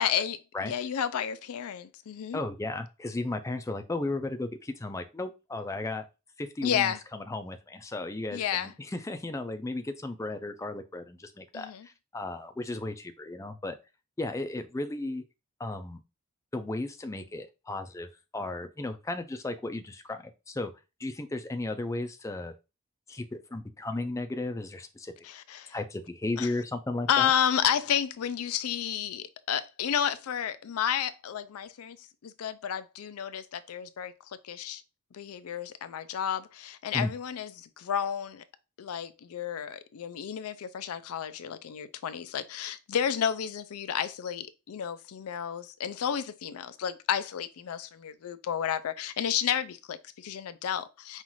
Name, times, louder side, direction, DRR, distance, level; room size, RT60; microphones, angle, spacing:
voice 1, 0.0-0.4 0.6-2.4 6.6-7.0 8.3-8.7 11.5-11.9 25.2-25.7 26.4-26.5 27.1-32.0 32.2-34.1 34.4-34.8 35.1-38.4 38.8-51.2, left 9 dB, 80° left, 0.4 m, -31 dB
voice 2, 2.3-6.1 6.4-13.8 14.2-15.2 15.6-16.0 16.5-20.7 21.0-22.6 23.1-25.1 25.7-27.3 36.9-37.1, left 2 dB, 15° left, 0.4 m, -35 dB
5.5 x 2.4 x 3.0 m
head